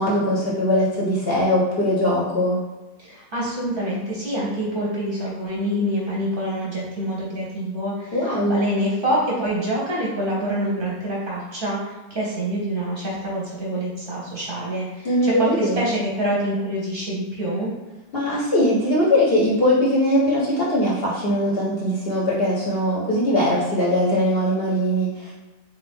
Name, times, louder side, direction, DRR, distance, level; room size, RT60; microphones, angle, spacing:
voice 1, 0.0-2.6 8.1-8.7 15.0-15.9 18.1-25.3, equal, 55° left, -5 dB, 0.7 m, -21 dB
voice 2, 3.0-17.7, equal, 45° right, -5 dB, 0.8 m, -26 dB
3.5 x 2.6 x 3.4 m, 1.1 s
omnidirectional pair, 1.5 m